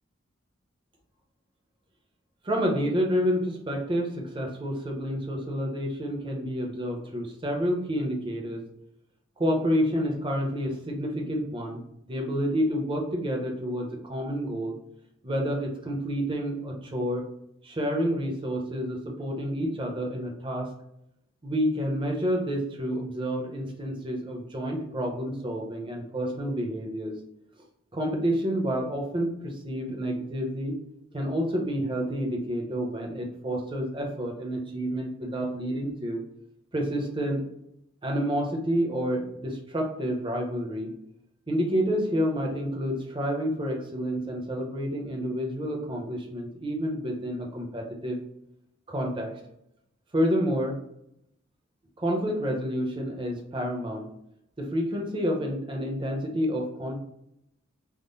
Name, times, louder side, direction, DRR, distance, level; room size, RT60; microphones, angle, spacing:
voice 1, 2.4-8.6 9.4-11.8 12.1-14.8 15.2-17.2 17.6-20.7 21.4-27.2 27.9-30.8 31.1-36.2 36.7-37.4 38.0-41.0 41.5-48.2 48.9-49.3 50.1-50.8 52.0-54.1 54.6-57.0, equal, 25° right, 1 dB, 0.7 m, -29 dB
3.6 x 2.0 x 3.9 m, 0.78 s
head